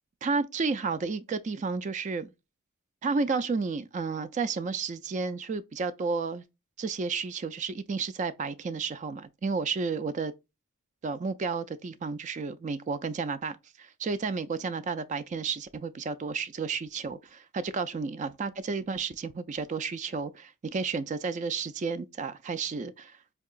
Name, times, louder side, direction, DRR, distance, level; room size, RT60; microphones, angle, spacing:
voice 1, 0.2-2.3 3.0-6.4 6.8-10.3 11.0-23.2, right 4 dB, 35° right, 0.3 m, -32 dB
4.5 x 2.9 x 2.3 m
head